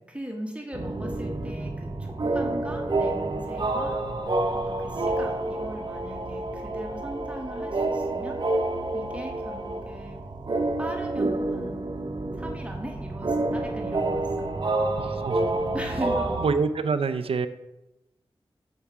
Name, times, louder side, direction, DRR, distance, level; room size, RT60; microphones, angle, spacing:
voice 1, 0.1-4.0 4.5-8.4 8.9-10.2 10.8-11.8 12.3-14.5 15.7-16.4, equal, 10° right, 1 dB, 1.3 m, -39 dB
sound 1, 0.7-16.5, right 2 dB, 50° right, 0.9 m, -28 dB
voice 2, 15.0-15.5 16.4-17.5, right 5 dB, 80° right, 11 dB, 0.4 m, -26 dB
7.1 x 4.5 x 4.9 m, 0.96 s
cardioid pair, 55°, 10 cm